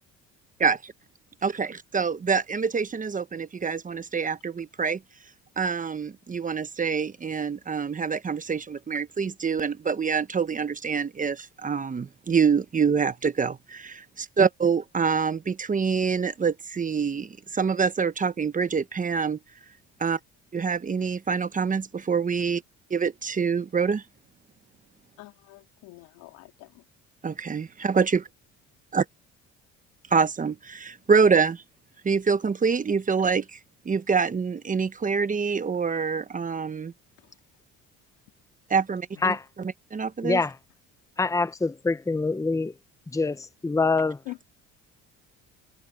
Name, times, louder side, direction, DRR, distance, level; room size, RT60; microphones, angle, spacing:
voice 1, 0.6-0.9 1.4-5.0 5.6-19.4 20.0-20.2 20.5-22.6 22.9-24.0 27.2-28.1 28.9-29.0 30.1-31.6 32.0-33.6 33.8-36.9 38.7-40.4, right 5 dB, 25° right, 1.0 m, -26 dB
voice 2, 25.2-26.9 37.2-37.3 39.1-39.3 44.3-44.4, left 21 dB, 90° left, 3.7 m, -44 dB
voice 3, 41.2-42.7 43.1-44.2, left 3 dB, 10° left, 0.9 m, -25 dB
cardioid pair, 95°, 31 cm